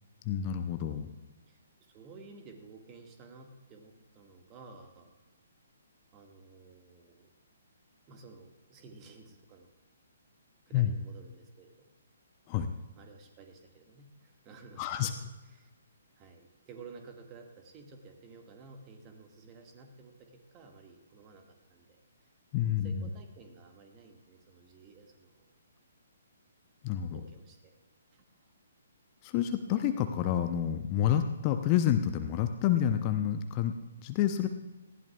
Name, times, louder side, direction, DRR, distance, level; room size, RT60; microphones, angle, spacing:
voice 1, 0.2-1.1 10.7-10.9 12.5-12.7 14.8-15.1 22.5-23.0 26.8-27.2 29.2-33.7 34.0-34.5, left 10 dB, 30° left, 8 dB, 0.7 m, -28 dB
voice 2, 1.5-5.2 6.1-7.3 8.1-9.7 10.7-11.9 13.0-15.2 15.4-15.7 16.1-22.0 22.6-25.5 27.1-27.7 28.1-28.5, right 4 dB, 25° right, 3 dB, 1.8 m, -53 dB
19.0 x 15.0 x 2.4 m, 1.1 s
figure-of-eight pair, 130°, 0 cm